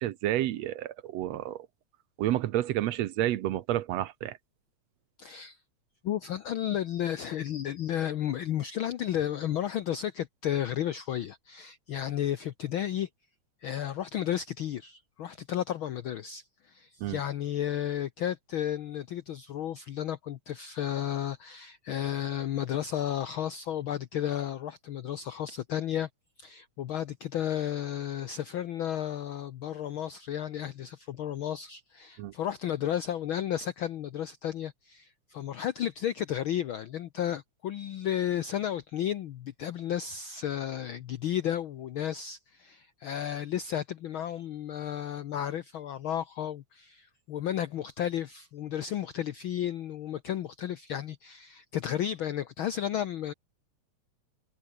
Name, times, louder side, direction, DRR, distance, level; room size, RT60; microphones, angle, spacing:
voice 1, 0.0-1.7 2.2-4.4 17.0-17.2 32.2-32.3, right 13 dB, 70° right, 1.9 m, -30 dB
voice 2, 5.2-5.6 6.0-13.1 13.6-26.1 26.4-53.3, left 10 dB, 75° left, 1.2 m, -33 dB
omnidirectional pair, 3.3 m